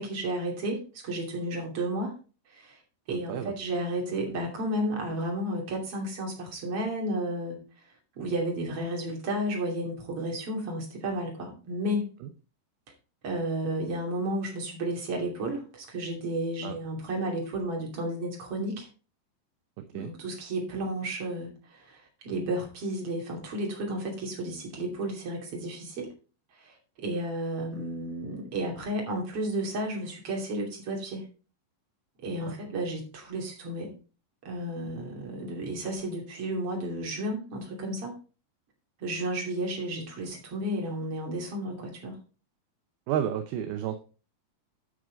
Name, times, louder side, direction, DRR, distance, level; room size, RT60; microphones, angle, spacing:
voice 1, 0.0-2.1 2.5-2.8 3.1-7.6 8.2-12.1 13.2-18.9 19.9-26.1 26.6-31.3 32.2-33.9 34.4-38.2 39.0-42.2, right 1 dB, 35° right, 0 dB, 3.2 m, -32 dB
voice 2, 3.1-3.5 16.6-16.8 19.9-20.1 32.5-32.6 43.1-44.0, right 10 dB, 80° right, 8 dB, 2.4 m, -31 dB
11.0 x 6.4 x 3.9 m, 0.35 s
omnidirectional pair, 4.9 m